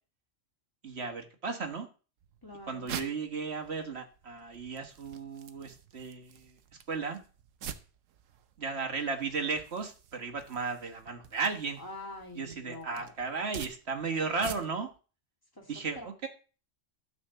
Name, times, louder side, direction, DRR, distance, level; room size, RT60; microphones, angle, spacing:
voice 1, 0.8-1.9 2.7-6.6 6.9-7.2 8.6-11.8 12.3-14.9 15.7-16.3, right 4 dB, 55° right, 4 dB, 1.6 m, -35 dB
sound 1, 2.2-15.0, right 9 dB, 90° right, 1.2 m, -47 dB
voice 2, 2.4-2.9 11.8-13.3 15.6-15.7 16.0-16.1, left 1 dB, 15° left, 0 dB, 2.4 m, -45 dB
12.5 x 4.3 x 6.7 m, 0.36 s
omnidirectional pair, 1.3 m